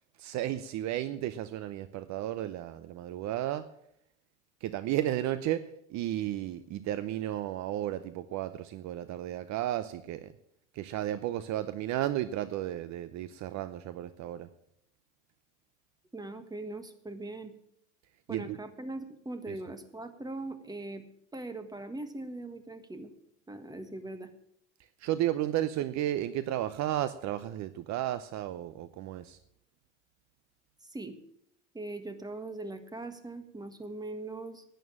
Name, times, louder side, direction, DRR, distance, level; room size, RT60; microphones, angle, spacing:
voice 1, 0.2-3.7 4.6-5.6 5.9-10.3 10.7-14.5 18.3-18.6 19.5-19.6 25.0-29.4, right 13 dB, 50° right, 13 dB, 0.7 m, -33 dB
voice 2, 16.1-17.5 18.3-21.0 21.3-23.1 23.5-24.3 30.8-31.2 31.7-34.6, right 2 dB, 10° right, 9 dB, 1.6 m, -40 dB
11.0 x 9.3 x 7.3 m, 0.73 s
hypercardioid pair, 85°, 36 cm